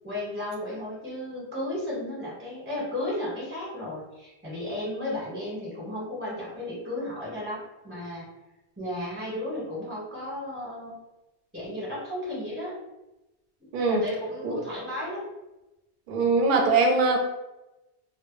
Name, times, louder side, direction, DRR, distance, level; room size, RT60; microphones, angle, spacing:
voice 1, 0.0-8.3 8.8-10.9 11.5-12.8 13.8-15.3, left 1 dB, 10° right, -8 dB, 0.8 m, -34 dB
voice 2, 16.1-17.2, right 3 dB, 60° right, 1 dB, 0.6 m, -22 dB
2.1 x 2.0 x 3.0 m, 0.98 s
omnidirectional pair, 1.1 m